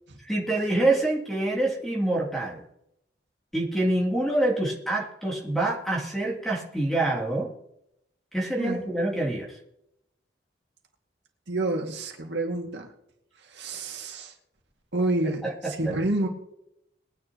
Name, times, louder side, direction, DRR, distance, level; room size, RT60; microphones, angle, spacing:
voice 1, 0.2-2.6 3.5-7.5 8.3-9.6 15.4-16.0, right 2 dB, ahead, -3 dB, 2.9 m, -26 dB
voice 2, 11.5-12.9 13.4-14.3 14.9-16.3, right 2 dB, 75° right, 1 dB, 2.3 m, -29 dB
21.5 x 10.0 x 3.0 m, 0.79 s
head